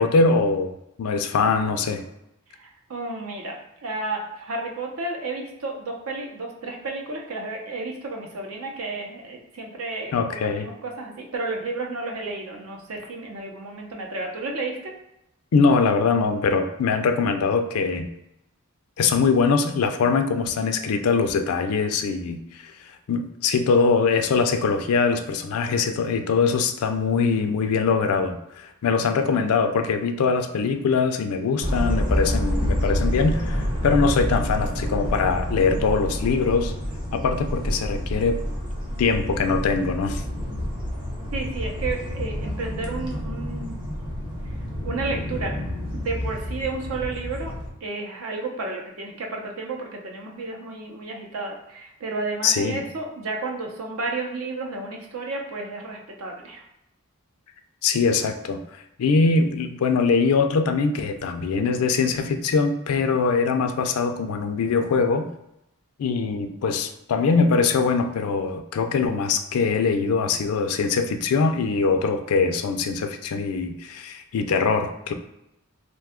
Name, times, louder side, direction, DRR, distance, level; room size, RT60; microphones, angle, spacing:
voice 1, 0.0-2.0 10.1-10.7 15.5-18.1 19.0-22.7 23.1-36.7 37.1-38.4 39.0-40.2 52.4-52.8 57.8-58.6 59.0-65.3 66.0-75.1, left 4 dB, 85° left, 7 dB, 0.4 m, -22 dB
voice 2, 2.6-14.9 40.6-40.7 41.3-43.8 44.8-45.6 45.9-47.5 47.8-56.6, right 3 dB, 75° right, 1 dB, 0.6 m, -32 dB
sound 1, 31.6-47.7, equal, 25° right, 0.6 m, -28 dB
2.6 x 2.2 x 3.5 m, 0.83 s
head